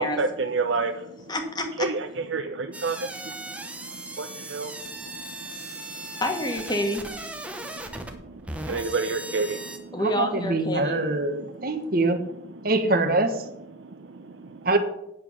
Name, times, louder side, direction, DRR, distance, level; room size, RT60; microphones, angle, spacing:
voice 1, 0.0-1.2 1.8-5.8 7.6-10.0 10.7-11.0 11.4-12.0 12.5-12.7 13.8-14.7, right 4 dB, 70° right, 0.6 m, -31 dB
voice 2, 1.3-1.9 6.2-7.0 9.9-11.0, left 1 dB, 20° left, 1.5 m, -27 dB
sound 1, 2.7-9.8, right 1 dB, 5° right, 0.9 m, -38 dB
voice 3, 10.0-12.2 12.6-13.3 14.6-14.8, right 2 dB, 45° right, 1.1 m, -24 dB
9.1 x 7.5 x 6.2 m
head